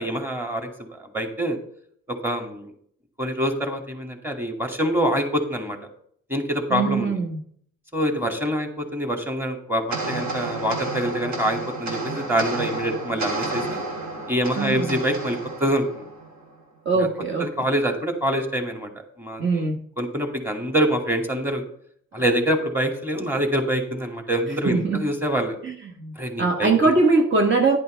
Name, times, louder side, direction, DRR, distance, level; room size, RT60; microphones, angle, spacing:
voice 1, 0.0-1.6 2.1-2.7 3.2-5.8 6.3-7.2 7.9-13.8 14.3-16.0 17.0-17.1 17.4-18.9 19.2-19.6 20.0-21.6 22.1-25.6 26.2-26.9, equal, 5° right, 4 dB, 2.4 m, -25 dB
voice 2, 6.7-7.4 14.6-15.0 16.8-17.5 19.4-19.8 24.6-25.0 25.6-27.8, right 3 dB, 40° right, 3 dB, 1.4 m, -22 dB
sound 1, 9.9-16.5, right 2 dB, 65° right, 3.1 m, -31 dB
10.5 x 10.5 x 3.4 m, 0.63 s
cardioid pair, 90°, 30 cm